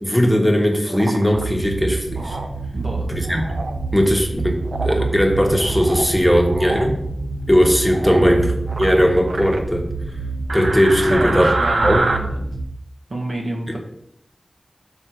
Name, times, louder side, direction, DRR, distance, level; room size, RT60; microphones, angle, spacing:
voice 1, 0.0-2.4 3.1-3.4 3.9-4.6 4.8-6.9 7.5-8.5 8.8-9.8 10.5-11.5 11.8-12.1 13.7-13.8, equal, 5° left, 1 dB, 1.4 m, -18 dB
sound 1, 0.9-1.4 2.2-2.5 3.2-3.8 4.6-5.1 5.5-6.1 6.4-6.9 7.9-8.3 8.7-9.6 10.5-12.2, right 2 dB, 85° right, 0.7 m, -26 dB
sound 2, 1.3-12.6, right 3 dB, 35° right, 1.1 m, -28 dB
voice 2, 2.7-3.1 8.1-8.4 11.1-12.3 13.1-13.8, right 1 dB, 65° right, -2 dB, 1.7 m, -29 dB
6.5 x 3.6 x 6.2 m, 0.76 s
wide cardioid pair, 45°, 0 cm